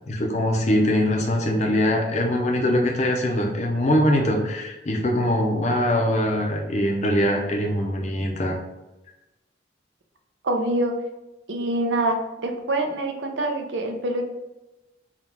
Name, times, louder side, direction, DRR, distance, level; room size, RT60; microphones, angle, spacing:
voice 1, 0.1-8.6, left 1 dB, 40° left, 1 dB, 0.6 m, -22 dB
voice 2, 10.4-10.9 11.5-12.2 12.4-14.2, right 1 dB, 80° right, 3 dB, 0.6 m, -25 dB
3.6 x 2.3 x 4.3 m, 1.0 s
head